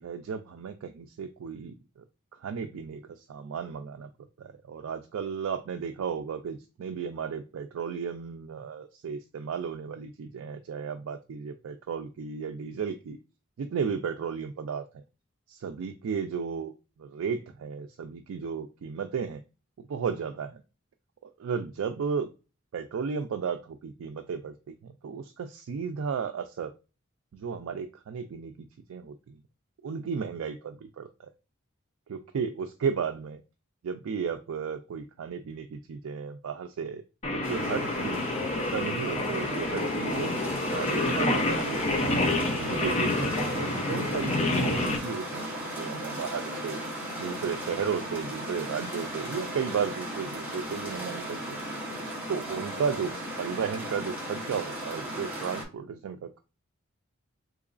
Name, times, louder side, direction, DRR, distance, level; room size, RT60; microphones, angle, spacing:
voice 1, 0.0-2.0 2.4-4.1 4.4-13.2 13.6-15.0 15.5-16.7 17.0-19.4 19.9-20.6 21.2-22.3 22.7-24.5 24.8-26.7 27.3-29.4 29.8-31.3 32.1-33.4 33.8-37.0 37.3-38.2 38.5-40.3 40.7-46.8 47.2-51.6 52.3-53.1 53.4-56.4, right 6 dB, 70° right, 6 dB, 0.4 m, -34 dB
Singing, 37.2-45.0, left 2 dB, 30° left, 0.5 m, -28 dB
sound 1, 37.4-55.6, right 1 dB, 10° right, 1.0 m, -36 dB
3.8 x 3.0 x 2.4 m, 0.31 s
head